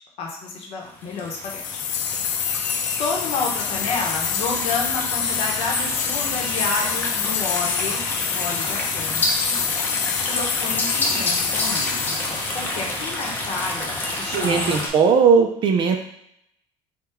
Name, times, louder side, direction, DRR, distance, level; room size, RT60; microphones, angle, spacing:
voice 1, 0.2-1.8 3.0-8.0 8.3-9.6 10.2-12.2 12.5-14.8, left 4 dB, 60° left, 0 dB, 1.0 m, -30 dB
sound 1, 1.0-14.9, left 1 dB, 15° left, 0.7 m, -29 dB
sound 2, 1.4-13.5, left 7 dB, 90° left, 0.4 m, -27 dB
voice 2, 14.3-16.0, right 5 dB, 40° right, 5 dB, 0.5 m, -18 dB
3.6 x 2.3 x 4.3 m, 0.74 s
cardioid pair, 140°, 12 cm